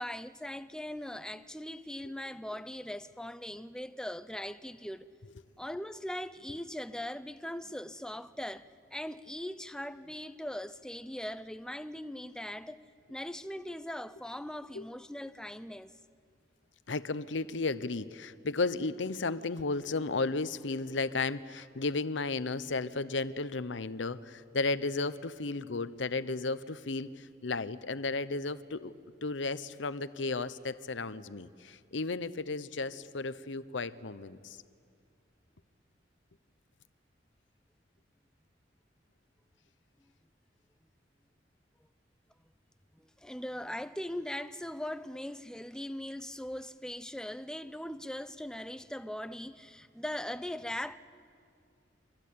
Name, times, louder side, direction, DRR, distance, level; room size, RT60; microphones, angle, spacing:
voice 1, 0.0-5.1 5.6-12.8 13.1-15.9 43.0-51.0, left 1 dB, 5° left, 0.6 m, -40 dB
voice 2, 16.9-28.9 29.2-34.6, left 3 dB, 80° left, 0.8 m, -34 dB
28.5 x 24.0 x 8.6 m
head